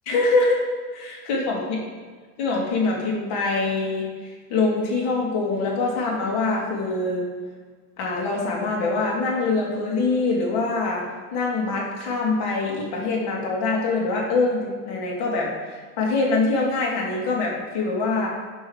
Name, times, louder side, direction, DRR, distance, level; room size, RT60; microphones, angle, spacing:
voice 1, 0.1-0.6 0.9-1.8 2.4-7.3 8.0-11.0 11.3-18.3, left 3 dB, 55° left, -2 dB, 2.8 m, -24 dB
8.1 x 4.5 x 6.6 m, 1.5 s
supercardioid pair, 100°, 46 cm